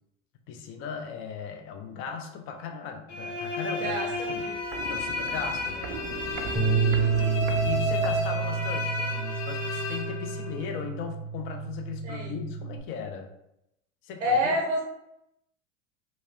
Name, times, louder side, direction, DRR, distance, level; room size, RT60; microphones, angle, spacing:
voice 1, 0.5-4.6 4.9-5.9 6.7-13.3 14.0-14.6, left 6 dB, 35° left, 4 dB, 0.5 m, -38 dB
sound 1, 3.1-10.8, left 2 dB, 85° left, 0.8 m, -32 dB
voice 2, 3.8-4.5 12.0-12.3 14.2-14.8, equal, 90° right, 0 dB, 0.8 m, -27 dB
Walk footsteps, 4.1-8.8 9.1-9.2, right 6 dB, 50° right, 0.5 m, -40 dB
Bass guitar, 6.6-12.8, right 6 dB, ahead, 0.7 m, -29 dB
3.0 x 2.4 x 2.7 m, 0.82 s
hypercardioid pair, 90°, 38 cm